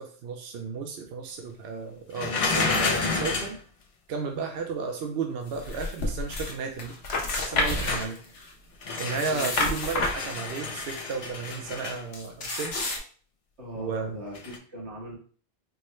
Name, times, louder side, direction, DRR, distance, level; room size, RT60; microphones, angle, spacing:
voice 1, 0.0-3.6 4.1-6.9 7.4-8.2 9.0-12.8 13.7-14.2, right 5 dB, 70° right, 3 dB, 0.8 m, -33 dB
sound 1, 2.1-3.6 7.3-8.1 8.8-9.4 9.8-12.0 14.3-14.6, left 4 dB, 45° left, 0.4 m, -30 dB
sound 2, 5.5-6.5 6.8-8.5 9.0-11.0 12.1-13.0, left 2 dB, 70° left, 1.0 m, -30 dB
voice 2, 13.6-15.1, equal, 90° right, -3 dB, 1.7 m, -40 dB
4.6 x 2.2 x 3.0 m, 0.42 s
omnidirectional pair, 1.1 m